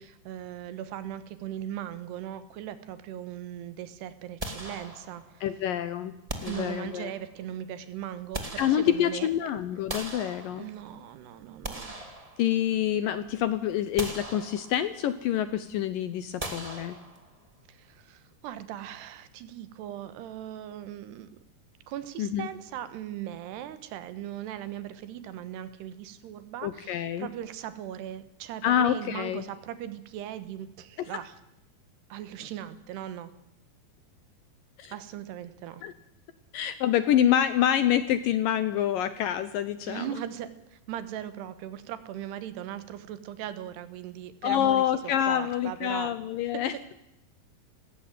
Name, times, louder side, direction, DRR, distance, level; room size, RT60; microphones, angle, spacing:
voice 1, 0.0-5.4 6.5-9.3 10.5-12.0 17.7-21.3 21.9-31.3 32.1-33.3 34.9-35.8 39.9-44.8 45.3-46.1, right 11 dB, 80° right, 13 dB, 3.3 m, -39 dB
sound 1, 4.4-5.4 6.3-7.3 8.0-9.3 9.9-11.0 11.4-12.9 13.3-13.4 14.0-15.0 16.4-17.5, right 1 dB, 20° right, 0.8 m, -40 dB
voice 2, 5.4-6.1 6.4-7.1 8.6-10.7 12.4-17.0 22.2-22.5 26.6-27.3 28.6-29.4 31.0-31.1 34.8-34.9 35.8-35.9 36.5-40.1 44.4-46.9, left 10 dB, 75° left, 12 dB, 2.2 m, -27 dB
19.0 x 16.0 x 9.2 m, 0.86 s
omnidirectional pair, 4.8 m